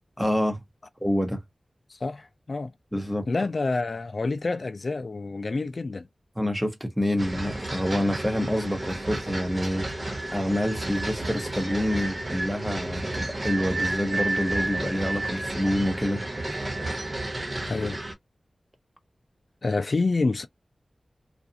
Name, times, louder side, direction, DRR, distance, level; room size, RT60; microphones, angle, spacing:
voice 1, 0.2-0.6 1.0-1.4 2.9-3.3 6.4-9.9 10.3-16.2, equal, 5° right, 1.0 m, -27 dB
voice 2, 1.9-2.7 3.3-6.1 17.7-18.0 19.6-20.5, left 3 dB, 60° left, 0.4 m, -28 dB
sound 1, 7.2-18.1, right 2 dB, 40° right, 1.0 m, -31 dB
2.5 x 2.3 x 2.7 m
wide cardioid pair, 75°, 0 cm